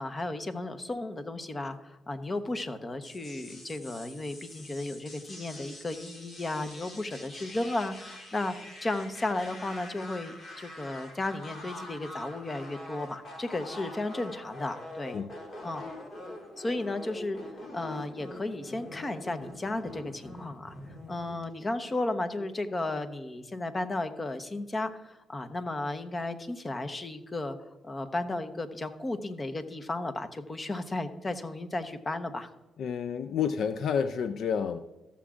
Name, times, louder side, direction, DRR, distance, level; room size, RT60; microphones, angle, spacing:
voice 1, 0.0-8.6 8.8-15.2 15.6-15.8 16.6-20.8 21.1-27.6 27.8-32.5, left 2 dB, 30° left, 10 dB, 1.0 m, -34 dB
sound 1, 3.0-21.4, left 1 dB, 50° left, 2.3 m, -45 dB
voice 2, 32.8-34.8, left 7 dB, 70° left, 11 dB, 0.4 m, -29 dB
14.5 x 7.1 x 2.5 m, 1.0 s
supercardioid pair, 65°, 0 cm